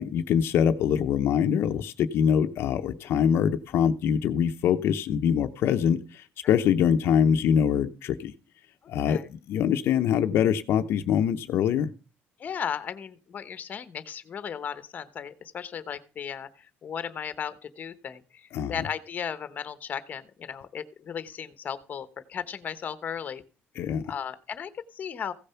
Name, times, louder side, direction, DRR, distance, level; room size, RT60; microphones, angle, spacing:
voice 1, 0.0-8.3 8.9-11.9 18.5-18.7 23.8-24.1, left 8 dB, 65° left, 6 dB, 0.8 m, -24 dB
voice 2, 12.4-23.4 23.8-25.3, left 7 dB, 40° left, 13 dB, 1.0 m, -36 dB
16.0 x 6.8 x 5.7 m, 0.36 s
cardioid pair, 140°, 4 cm